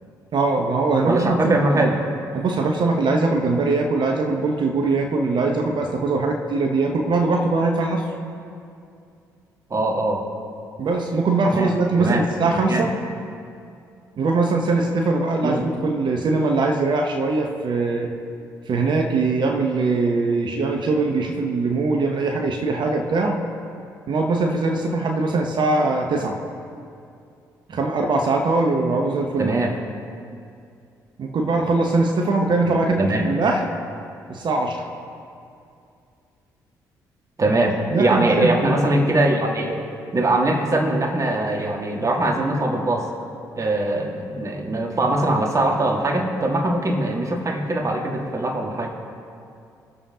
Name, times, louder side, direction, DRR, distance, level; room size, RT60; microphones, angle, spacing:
voice 1, 0.3-1.9 2.3-8.0 10.8-12.9 14.2-18.1 18.7-23.4 24.1-26.4 27.7-29.5 31.2-33.6 34.3-34.8 37.9-38.6, right 3 dB, 55° right, 2 dB, 1.0 m, -21 dB
voice 2, 1.0-2.0 9.7-10.3 11.5-12.3 12.7-12.9 15.4-15.6 29.4-29.8 32.6-33.3 37.4-39.8 40.1-43.1 43.6-48.9, right 2 dB, 35° right, 2 dB, 1.8 m, -22 dB
21.0 x 7.2 x 2.8 m, 2.4 s
hypercardioid pair, 45°, 10 cm